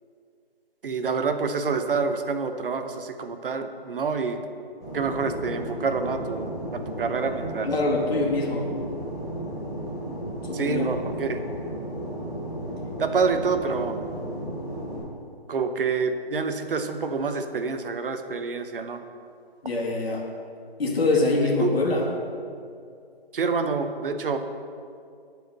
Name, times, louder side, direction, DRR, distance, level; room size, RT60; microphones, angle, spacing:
voice 1, 0.8-4.4 4.9-7.7 10.5-11.4 13.0-14.0 15.5-19.0 21.1-21.8 23.3-24.4, right 5 dB, 60° right, 8 dB, 0.8 m, -27 dB
Fixed-wing aircraft airplane, 4.8-15.0, right 1 dB, 5° left, 0.6 m, -34 dB
voice 2, 7.6-8.7 10.4-11.0 19.6-20.3 20.8-22.1, left 2 dB, 70° left, -2 dB, 2.0 m, -24 dB
8.0 x 4.7 x 6.5 m, 2.4 s
hypercardioid pair, 160°, 31 cm